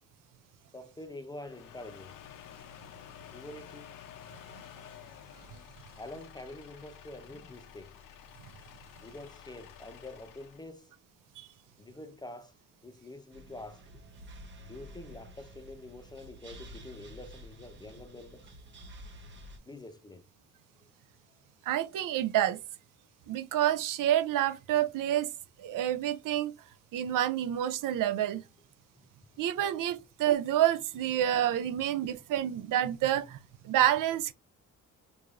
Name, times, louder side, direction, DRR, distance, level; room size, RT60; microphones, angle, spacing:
voice 1, 0.7-2.2 3.3-3.9 6.0-8.0 9.0-11.0 11.8-12.6 12.8-13.8 14.6-18.5 19.7-20.2 20.8-20.9, left 1 dB, 15° left, 0.4 m, -46 dB
sound 1, 1.3-10.7, left 9 dB, 85° left, 0.6 m, -51 dB
sound 2, 13.3-19.6, equal, 35° right, 0.8 m, -50 dB
voice 2, 21.7-22.6 23.3-25.3 25.6-26.5 26.9-28.4 29.4-33.4 33.6-34.3, right 11 dB, 75° right, 0.5 m, -28 dB
4.7 x 2.6 x 2.4 m
cardioid pair, 130°, 32 cm